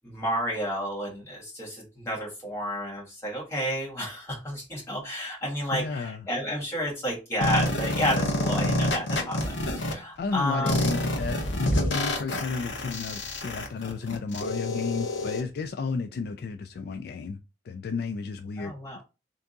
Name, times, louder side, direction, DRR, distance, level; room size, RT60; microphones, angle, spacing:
voice 1, 0.0-10.8 18.6-19.0, equal, 15° left, 1.5 m, -31 dB
voice 2, 5.7-6.3 10.2-17.4 17.6-18.7, left 4 dB, 55° left, 0.3 m, -33 dB
sound 1, 7.4-9.9 10.7-15.4, left 1 dB, 80° left, 0.8 m, -28 dB
3.4 x 2.6 x 3.8 m
head